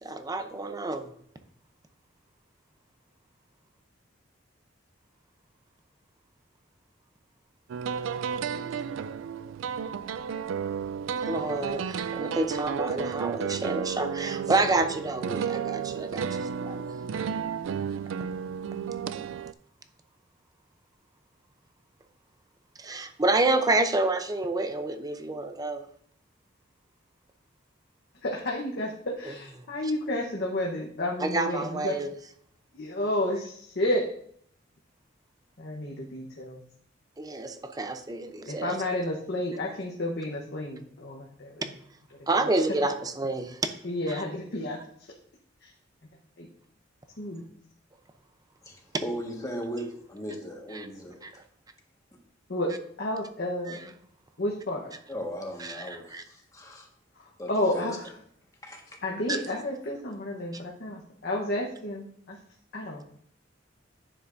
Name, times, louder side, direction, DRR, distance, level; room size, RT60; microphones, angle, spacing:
voice 1, 0.0-1.1 11.3-16.9 22.8-25.8 31.2-32.1 37.2-38.8 42.3-43.6 44.1-44.2 50.7-50.9 51.2-51.3 53.7-53.8 55.6-56.2 59.3-59.4, right 2 dB, 20° right, 8 dB, 0.6 m, -28 dB
sound 1, 7.7-19.5, right 7 dB, 80° right, 0.3 m, -32 dB
voice 2, 28.2-32.0 32.7-34.0 35.6-36.6 38.4-41.7 42.3-42.4 43.8-45.1 45.6-45.7 46.4-46.5 47.2-47.4 52.5-52.7 53.0-53.9 54.4-54.9 57.2-58.1 59.0-62.4 62.7-63.0, left 1 dB, 60° left, -2 dB, 1.0 m, -31 dB
voice 3, 48.6-51.2 55.1-56.9 57.4-58.0 58.6-59.0, equal, 20° left, 0 dB, 1.5 m, -37 dB
9.9 x 7.0 x 2.6 m, 0.65 s
head